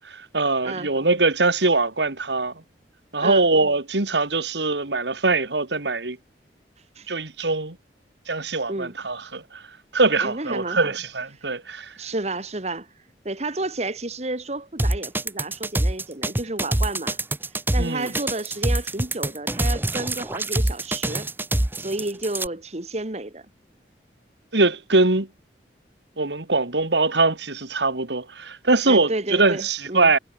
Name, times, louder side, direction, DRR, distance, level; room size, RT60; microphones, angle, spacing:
voice 1, 0.0-2.5 3.1-6.2 7.1-7.8 8.3-9.6 9.9-11.9 17.8-18.1 24.5-25.3 26.2-30.2, right 3 dB, 80° right, 2.4 m, -22 dB
voice 2, 10.2-10.8 12.0-12.9 13.2-17.2 17.7-21.3 21.8-23.5 28.9-30.1, right 2 dB, 35° right, 1.6 m, -31 dB
sound 1, 14.8-22.5, right 1 dB, 10° right, 0.8 m, -24 dB
head